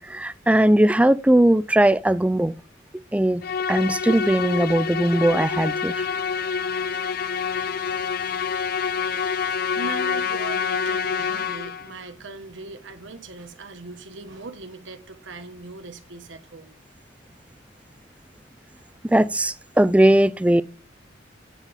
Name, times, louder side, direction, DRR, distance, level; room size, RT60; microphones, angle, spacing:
voice 1, 0.0-2.5 3.1-3.4 3.7-6.1 19.0-20.6, right 1 dB, 5° right, 0.3 m, -19 dB
Musical instrument, 3.4-11.9, left 6 dB, 50° left, 0.5 m, -27 dB
voice 2, 9.4-16.8, right 2 dB, 70° right, 1.2 m, -39 dB
9.8 x 4.1 x 5.1 m
head